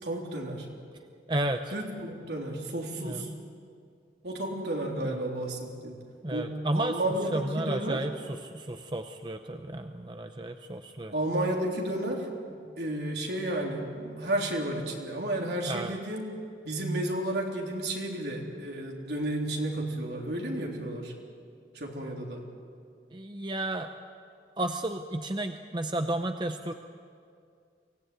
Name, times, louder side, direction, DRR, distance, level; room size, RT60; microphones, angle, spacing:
voice 1, 0.0-0.7 1.7-3.3 4.2-6.0 6.3-8.0 11.1-12.3 12.8-16.3 16.6-21.1 21.7-22.5, right 1 dB, 75° right, 0 dB, 3.6 m, -32 dB
voice 2, 1.3-1.6 3.0-3.2 5.0-5.1 6.2-7.0 7.3-11.1 15.7-16.0 23.1-23.9 24.6-26.7, right 1 dB, 25° right, 6 dB, 0.7 m, -32 dB
23.5 x 17.0 x 9.3 m, 2.3 s
head